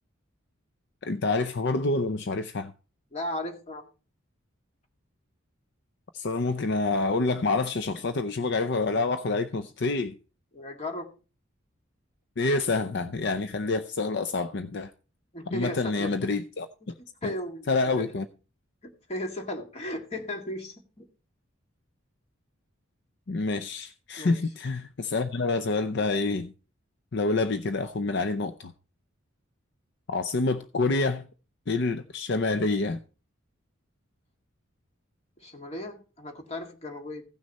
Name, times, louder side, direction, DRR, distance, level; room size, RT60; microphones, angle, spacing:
voice 1, 1.0-2.7 6.1-10.1 12.4-14.9 15.5-16.9 17.2-17.3 17.7-18.3 23.3-26.5 27.1-28.7 30.1-31.3 31.7-33.0, left 3 dB, 60° left, 0.6 m, -27 dB
voice 2, 3.1-3.9 10.5-11.1 15.3-16.1 17.2-18.2 18.8-21.1 24.2-24.4 35.4-37.2, left 1 dB, 30° left, 1.9 m, -36 dB
16.0 x 6.3 x 4.1 m
head